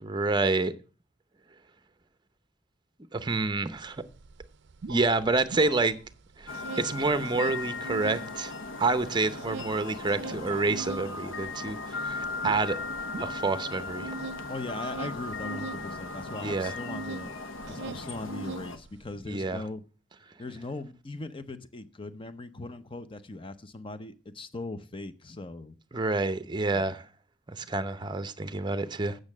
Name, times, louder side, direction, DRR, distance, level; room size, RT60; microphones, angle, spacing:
voice 1, 0.1-0.7 3.1-4.0 4.9-6.0 6.4-8.5 8.8-12.8 13.2-14.1 16.4-16.7 19.3-19.6 25.9-27.0 27.5-29.2, right 3 dB, 25° right, 0.7 m, -28 dB
sound 1, 3.8-3.9 4.1-6.1 6.4-8.3 8.6-17.3 17.6-19.1, right 3 dB, 60° right, 0.5 m, -41 dB
sound 2, 6.5-18.8, left 3 dB, 80° left, 1.0 m, -37 dB
voice 2, 14.5-17.3 17.7-19.8 20.4-25.8 26.7-27.0, left 2 dB, 25° left, 0.7 m, -39 dB
8.7 x 6.5 x 7.2 m
head